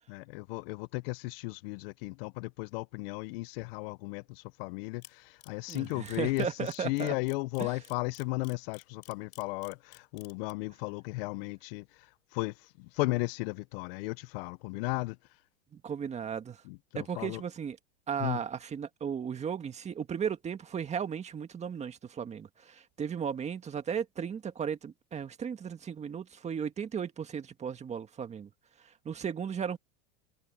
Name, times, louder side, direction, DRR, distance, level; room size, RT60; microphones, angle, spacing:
voice 1, 0.1-15.2 16.6-17.4 18.2-18.4, left 23 dB, 55° left, 0.6 m, -35 dB
Camera, 5.0-10.5, left 17 dB, 75° left, 3.6 m, -52 dB
voice 2, 5.7-7.1 7.6-7.7 15.7-16.6 16.9-17.8 18.1-28.5 28.8-29.8, right 7 dB, 20° right, 1.8 m, -35 dB
supercardioid pair, 135°, 34 cm